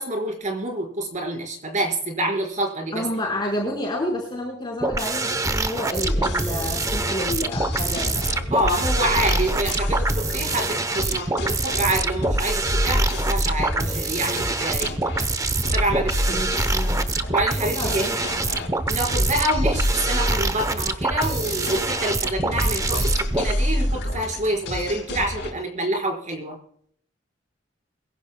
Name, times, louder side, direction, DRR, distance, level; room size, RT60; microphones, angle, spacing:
voice 1, 0.0-3.0 8.5-15.0 15.7-16.4 17.3-18.0 18.9-26.6, right 1 dB, 40° right, 1 dB, 4.6 m, -27 dB
voice 2, 2.9-8.2 16.3-17.1 17.6-18.7, left 1 dB, 25° left, -2 dB, 4.6 m, -30 dB
sound 1, 4.8-23.5, right 2 dB, 15° right, 0.8 m, -25 dB
sound 2, 6.0-25.5, equal, 65° left, 4.4 m, -28 dB
23.0 x 15.5 x 2.2 m, 0.63 s
head